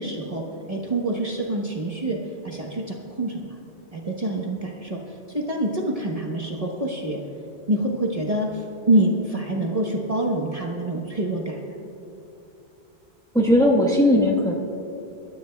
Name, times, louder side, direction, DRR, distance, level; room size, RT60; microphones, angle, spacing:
voice 1, 0.0-3.5 3.9-7.2 7.7-11.6, right 1 dB, 35° right, -1 dB, 1.2 m, -26 dB
voice 2, 13.3-14.5, left 1 dB, 5° left, -2 dB, 1.3 m, -18 dB
25.0 x 12.5 x 2.3 m, 2.9 s
omnidirectional pair, 1.1 m